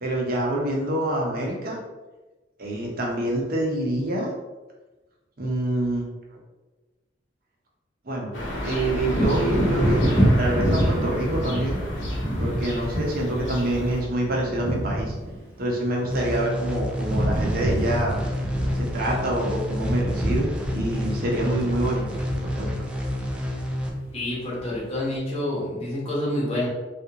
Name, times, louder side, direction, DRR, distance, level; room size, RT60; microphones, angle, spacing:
voice 1, 0.0-1.8 2.6-4.3 5.4-6.1 8.0-8.3 8.6-10.0 10.4-11.8 12.4-15.1 15.6-18.2 18.7-22.7, right 1 dB, 55° right, -1 dB, 0.8 m, -26 dB
sound 1, 8.3-14.0, equal, 90° left, 1.0 m, -31 dB
Wind / Thunder, 9.1-16.7 16.9-24.2 24.6-24.7, equal, 15° left, 0.8 m, -27 dB
sound 2, 16.1-23.9, left 1 dB, 5° right, 0.4 m, -29 dB
voice 2, 24.1-26.7, left 1 dB, 35° left, -6 dB, 1.0 m, -28 dB
3.4 x 2.5 x 2.8 m, 1.2 s
head